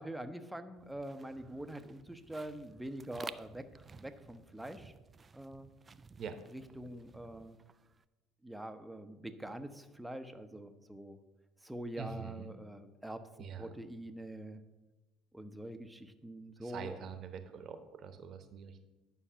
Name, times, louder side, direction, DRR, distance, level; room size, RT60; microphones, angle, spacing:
voice 1, 0.0-4.9 5.3-5.7 6.5-7.6 8.4-11.2 11.6-13.3 13.6-14.6 15.3-17.0, right 1 dB, 5° right, 9 dB, 0.9 m, -45 dB
sound 1, 0.8-8.0, right 4 dB, 30° right, 0.4 m, -53 dB
voice 2, 12.0-12.5 13.4-13.7 16.6-18.8, right 6 dB, 50° right, 9 dB, 1.0 m, -44 dB
9.9 x 5.7 x 5.6 m, 1.1 s
hypercardioid pair, 60°, 0 cm